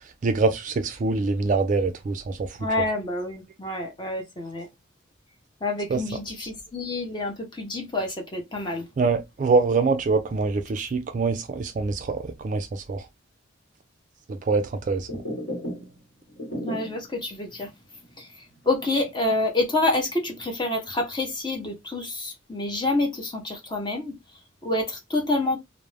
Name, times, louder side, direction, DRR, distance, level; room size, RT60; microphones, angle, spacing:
voice 1, 0.2-2.4 5.9-6.0 9.0-13.0 14.5-15.1, right 4 dB, 40° right, 0.3 m, -24 dB
voice 2, 2.6-4.7 5.6-8.9 16.6-17.7 18.2-24.2 24.6-25.6, left 2 dB, 25° left, 0.7 m, -28 dB
sound 1, 15.1-16.0 16.3-17.1 17.5-17.6 18.0-18.1 18.6-20.0 20.4-21.0, equal, 60° left, 1.2 m, -35 dB
2.5 x 2.0 x 3.1 m
head